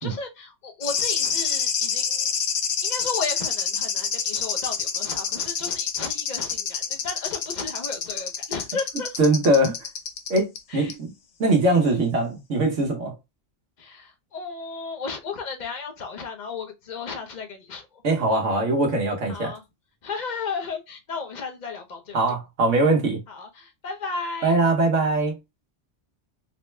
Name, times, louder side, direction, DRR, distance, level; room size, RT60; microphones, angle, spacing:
voice 1, 0.0-2.3 2.8-9.1 10.7-10.9 11.8-11.9 13.8-17.9 19.3-19.6 20.0-22.2 23.3-24.6, left 4 dB, 40° left, 0.8 m, -34 dB
sound 1, 0.8-10.6 10.9-11.0, left 7 dB, 75° left, 1.0 m, -27 dB
voice 2, 9.2-9.8 10.3-11.1 11.4-13.1 18.0-19.5 22.1-23.2 24.4-25.4, right 2 dB, 80° right, 1.5 m, -21 dB
4.1 x 2.2 x 3.2 m
omnidirectional pair, 1.3 m